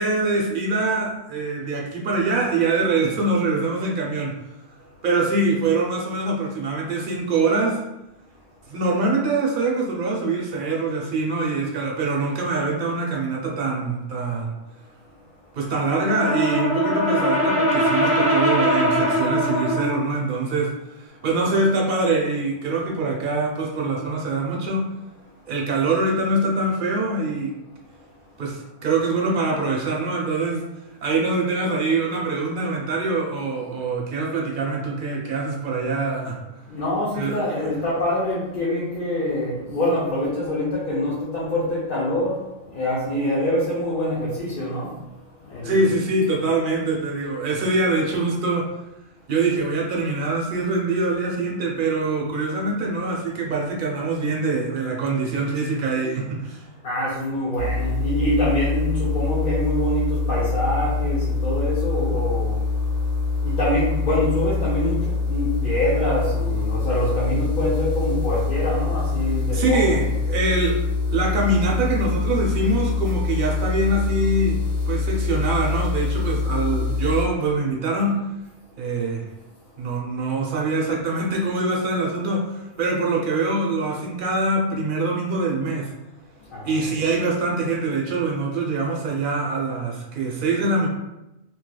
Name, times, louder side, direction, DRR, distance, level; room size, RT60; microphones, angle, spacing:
voice 1, 0.0-4.4 5.0-7.8 8.7-14.5 15.5-20.7 21.2-24.9 25.5-27.5 28.4-30.6 31.0-36.4 37.1-37.4 45.6-48.7 49.3-56.6 69.5-70.8 71.1-78.2 78.8-79.3 79.8-85.9 86.6-90.9, right 3 dB, 50° right, -1 dB, 0.7 m, -24 dB
Brass instrument, 15.9-20.1, equal, 20° right, 0.4 m, -21 dB
voice 2, 36.7-42.4 42.7-44.9 45.4-45.9 56.8-62.6 63.4-70.0 86.5-87.1, left 1 dB, 50° left, -7 dB, 0.8 m, -25 dB
sound 1, 57.6-77.3, left 4 dB, 75° left, 1.4 m, -24 dB
3.1 x 2.9 x 2.2 m, 0.92 s
omnidirectional pair, 1.3 m